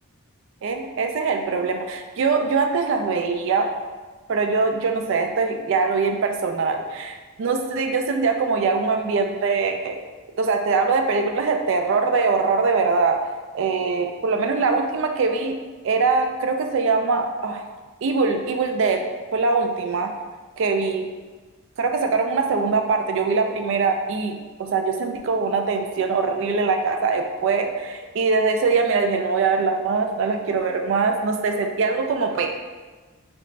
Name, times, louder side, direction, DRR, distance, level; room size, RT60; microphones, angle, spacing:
voice 1, 0.6-3.7 4.3-10.0 10.4-13.2 13.5-15.5 15.8-17.6 18.0-19.0 19.3-20.1 20.6-21.1 21.8-32.5, right 4 dB, 60° right, 5 dB, 0.3 m, -22 dB
3.1 x 2.5 x 3.2 m, 1.3 s
head